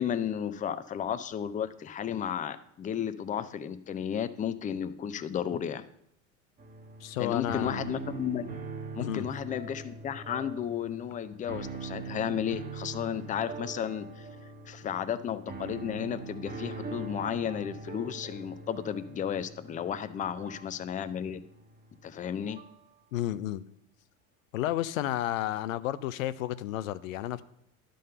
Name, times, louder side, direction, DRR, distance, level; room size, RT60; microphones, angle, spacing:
voice 1, 0.0-5.8 7.2-8.5 9.0-14.3 14.7-21.4 22.0-22.6, left 9 dB, 20° left, 12 dB, 0.4 m, -33 dB
sound 1, 6.6-22.8, right 4 dB, 20° right, 1.2 m, -42 dB
voice 2, 7.0-7.8 9.0-9.3 23.1-23.6 24.5-27.4, left 13 dB, 90° left, 15 dB, 0.5 m, -31 dB
11.0 x 3.9 x 6.5 m, 0.75 s
hypercardioid pair, 95°, 39 cm